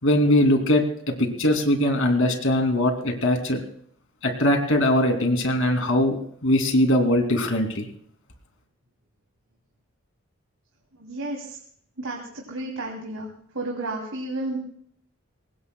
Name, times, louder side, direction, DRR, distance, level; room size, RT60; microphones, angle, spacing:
voice 1, 0.0-3.6 4.2-6.2 6.4-7.9, left 1 dB, 70° left, 5 dB, 2.7 m, -21 dB
voice 2, 10.9-11.6 12.0-13.3 13.5-14.6, right 2 dB, 80° right, -1 dB, 3.0 m, -32 dB
24.0 x 19.0 x 2.3 m, 0.63 s
head